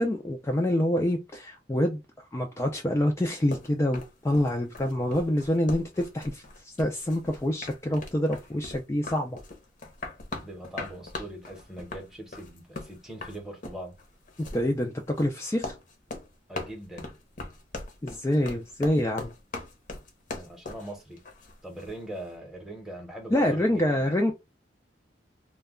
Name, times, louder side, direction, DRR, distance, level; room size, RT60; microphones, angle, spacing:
voice 1, 0.0-2.0 2.3-9.4 14.5-15.7 18.0-19.3 23.3-24.3, left 1 dB, 15° left, 0.3 m, -26 dB
sound 1, 3.5-22.0, left 2 dB, 45° left, 0.7 m, -40 dB
voice 2, 10.3-14.0 16.5-17.1 20.3-21.2 21.6-24.2, right 1 dB, 5° right, 0.8 m, -41 dB
2.2 x 2.2 x 3.5 m
head